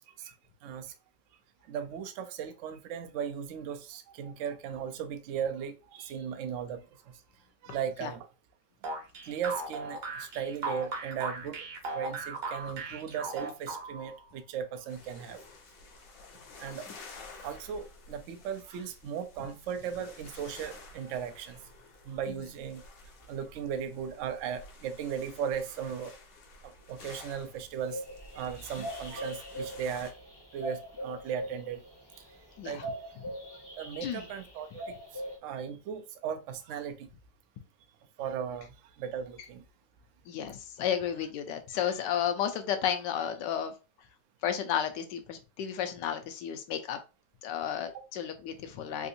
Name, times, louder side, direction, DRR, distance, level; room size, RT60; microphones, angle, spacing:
voice 1, 0.6-0.9 1.7-7.2 7.6-8.3 9.2-11.7 11.9-15.4 16.6-16.9 17.4-21.6 22.0-22.8 23.3-26.1 26.6-28.0 28.3-30.1 30.5-31.8 32.6-33.2 33.8-37.1 38.2-39.6 47.9-48.0, right 8 dB, 75° right, 0.7 m, -37 dB
sound 1, 8.8-14.2, right 3 dB, 60° right, 1.2 m, -37 dB
sound 2, 14.9-30.1, left 3 dB, 60° left, 1.0 m, -51 dB
sound 3, 27.8-35.4, equal, 25° left, 0.5 m, -41 dB
voice 2, 32.6-32.9 34.0-34.3 40.3-43.7 44.4-47.0 47.4-49.1, left 9 dB, 80° left, 1.3 m, -32 dB
3.6 x 2.5 x 2.6 m
omnidirectional pair, 1.9 m